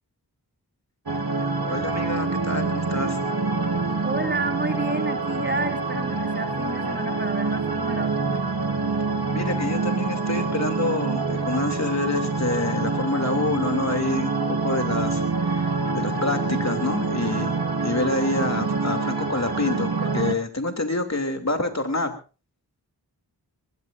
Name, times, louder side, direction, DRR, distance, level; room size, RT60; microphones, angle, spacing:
sound 1, 1.1-20.3, right 3 dB, 65° right, 2.0 m, -26 dB
voice 1, 1.6-3.2 9.3-22.1, left 2 dB, 40° left, 6 dB, 3.0 m, -27 dB
voice 2, 4.0-8.4, right 2 dB, 25° right, 4 dB, 3.0 m, -30 dB
21.0 x 20.0 x 2.7 m, 0.34 s
wide cardioid pair, 50°, 41 cm